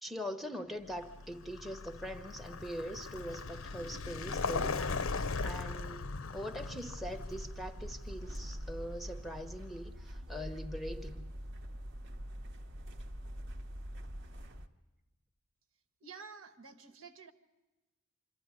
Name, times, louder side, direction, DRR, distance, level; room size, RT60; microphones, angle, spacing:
voice 1, 0.0-11.3, equal, ahead, 7 dB, 0.7 m, -42 dB
Vehicle, 0.9-9.7, left 4 dB, 70° left, 0.6 m, -39 dB
sound 1, 6.9-14.7, equal, 55° right, 1.0 m, -44 dB
voice 2, 16.0-17.3, right 5 dB, 70° right, 6 dB, 1.3 m, -50 dB
25.5 x 13.5 x 9.6 m, 1.1 s
head